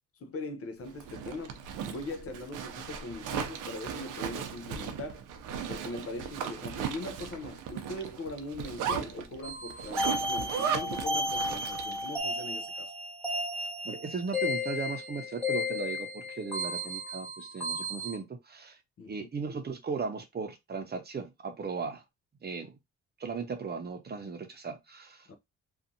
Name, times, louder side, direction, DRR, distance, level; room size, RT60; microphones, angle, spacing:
voice 1, 0.2-5.3 5.7-12.9 19.0-19.3 25.3-25.4, left 2 dB, 50° left, 0.7 m, -41 dB
Zipper (clothing), 0.9-12.1, right 7 dB, 85° right, 0.6 m, -37 dB
sound 1, 9.4-18.2, left 1 dB, 5° left, 1.5 m, -34 dB
voice 2, 13.8-18.8 19.1-22.0 22.4-22.8 23.2-25.3, right 5 dB, 35° right, 0.7 m, -37 dB
2.7 x 2.4 x 2.7 m
cardioid pair, 90°, 30 cm